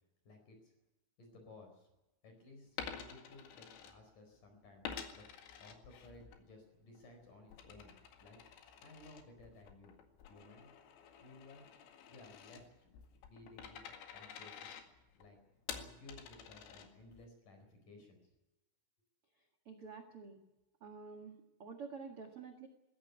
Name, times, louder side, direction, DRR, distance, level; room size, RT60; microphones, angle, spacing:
voice 1, 0.3-0.7 1.2-1.9 2.2-8.4 8.8-10.0 10.3-10.7 11.2-11.6 12.1-12.7 13.3-14.8 15.1-15.4 15.7-18.2, left 2 dB, 45° left, 4 dB, 5.8 m, -58 dB
Coin (dropping), 2.7-4.4 4.8-6.4 6.8-17.3, left 7 dB, 80° left, 4.5 m, -50 dB
voice 2, 19.6-20.4 20.8-22.7, right 5 dB, 60° right, 3 dB, 1.5 m, -49 dB
20.5 x 16.5 x 9.6 m, 0.95 s
omnidirectional pair, 5.7 m